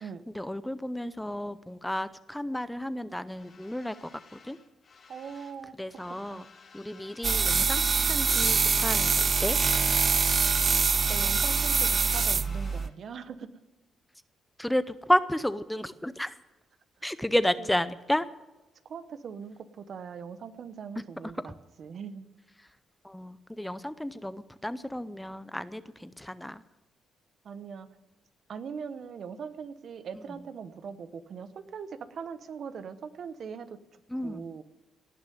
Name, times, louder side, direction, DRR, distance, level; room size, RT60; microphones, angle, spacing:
voice 1, 0.3-4.6 5.8-6.5 6.7-7.8 8.1-9.6 14.6-16.3 17.0-18.3 23.0-26.6 34.1-34.5, left 1 dB, 5° left, 14 dB, 0.6 m, -31 dB
sound 1, 3.3-5.6 5.9-8.5 8.7-12.9, left 5 dB, 45° left, 2.1 m, -53 dB
voice 2, 5.1-5.8 6.3-6.4 11.1-13.5 17.0-17.1 17.6-17.7 18.8-22.3 27.4-27.9 28.5-33.8 34.2-34.6, right 6 dB, 55° right, 12 dB, 1.0 m, -41 dB
sound 2, 7.2-12.9, right 5 dB, 40° right, 0.4 m, -24 dB
18.5 x 6.5 x 9.2 m, 1.1 s
cardioid pair, 90°, 0 cm